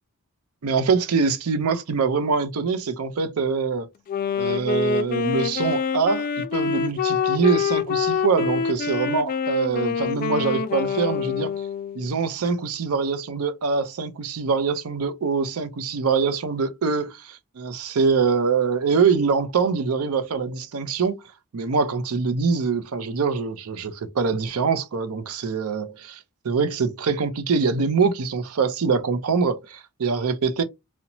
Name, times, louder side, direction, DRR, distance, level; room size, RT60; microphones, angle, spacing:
voice 1, 0.6-3.9 4.4-11.5 11.9-21.2 21.5-26.2 26.4-30.6, right 5 dB, 85° right, 0.5 m, -24 dB
Wind instrument woodwind instrument, 4.1-12.1, left 6 dB, 40° left, 0.3 m, -26 dB
2.9 x 2.1 x 2.6 m
head